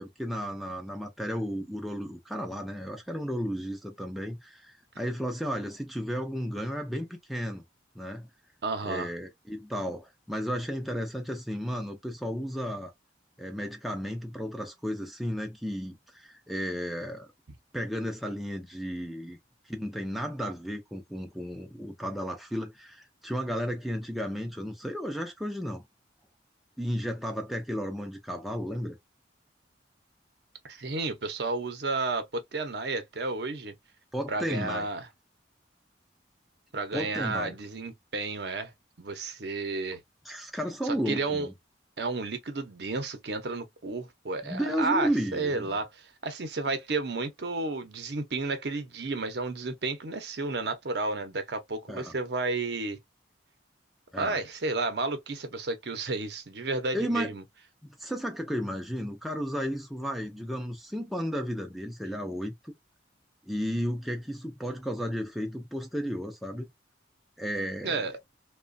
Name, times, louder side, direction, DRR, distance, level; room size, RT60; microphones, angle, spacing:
voice 1, 0.0-7.6 8.0-8.3 8.8-12.9 13.4-17.3 17.7-19.4 19.7-25.8 26.8-29.0 34.1-34.9 36.9-37.5 40.3-41.5 44.4-45.7 51.9-52.1 54.1-54.4 56.9-57.3 58.0-62.7 63.4-66.7 67.4-68.1, equal, ahead, 0.4 m, -33 dB
voice 2, 8.6-9.1 30.6-33.7 34.3-35.1 36.7-38.7 39.0-40.0 40.8-41.5 42.0-53.0 54.2-57.4 67.8-68.1, right 3 dB, 60° right, 0.6 m, -32 dB
2.9 x 2.2 x 2.5 m
head